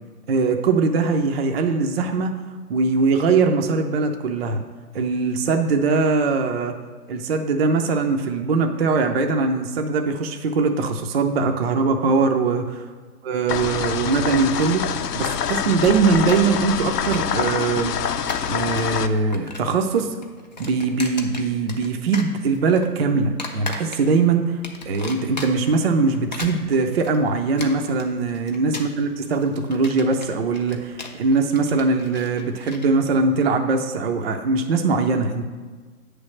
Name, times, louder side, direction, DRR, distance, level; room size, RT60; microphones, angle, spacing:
voice 1, 0.3-2.4 2.7-4.6 4.9-6.8 7.1-12.8 13.2-14.9 15.1-17.9 18.5-20.1 20.6-24.6 24.9-35.5, right 4 dB, 45° right, 5 dB, 0.4 m, -21 dB
sound 1, 13.5-19.1, left 8 dB, 85° left, 0.6 m, -25 dB
sound 2, 14.4-15.0 15.3-15.4 15.6-16.5 16.8-17.6 18.1-18.9 19.1-19.8 20.0-21.9 22.1-22.9 23.4-24.2 24.6-25.7 26.1-32.9, left 3 dB, 30° left, 0.4 m, -36 dB
7.9 x 3.3 x 6.0 m, 1.5 s
hypercardioid pair, 145°, 46 cm